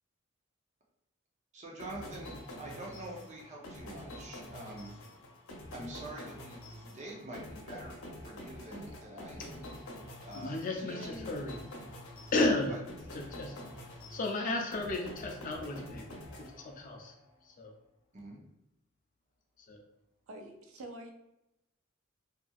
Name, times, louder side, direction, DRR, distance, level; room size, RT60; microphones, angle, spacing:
voice 1, 1.5-2.3 2.6-4.9 5.7-9.7 10.2-11.3 12.6-12.8 18.1-18.4, right 1 dB, 35° right, -2 dB, 0.6 m, -46 dB
sound 1, 1.8-17.1, left 1 dB, 90° left, 0.7 m, -47 dB
voice 2, 10.3-11.6 12.3-12.7 13.3-13.6 14.1-16.1 16.4-17.1 17.5-17.7 19.7-19.8, left 2 dB, 40° left, 2 dB, 0.5 m, -33 dB
voice 3, 20.3-21.1, right 1 dB, 85° right, 3 dB, 0.5 m, -46 dB
2.8 x 2.5 x 2.3 m, 0.86 s
head